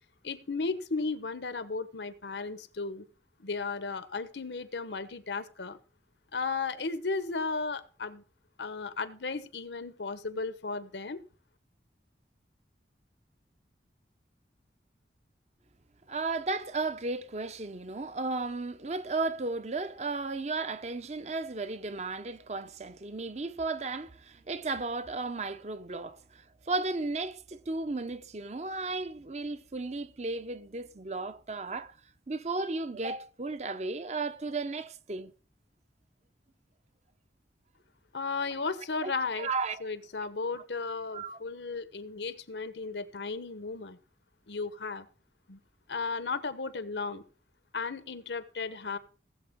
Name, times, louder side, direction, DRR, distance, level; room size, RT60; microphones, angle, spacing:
voice 1, 0.2-3.0 3.4-5.8 6.3-8.2 8.6-11.2 38.1-39.5 39.8-44.0 44.5-45.1 45.5-45.6 45.9-47.2 47.7-49.0, left 4 dB, 85° left, 1.1 m, -35 dB
voice 2, 16.1-31.9 32.3-35.3 39.0-39.1 39.4-39.8 41.1-41.4, right 3 dB, 40° right, 0.7 m, -34 dB
18.0 x 7.9 x 3.6 m
head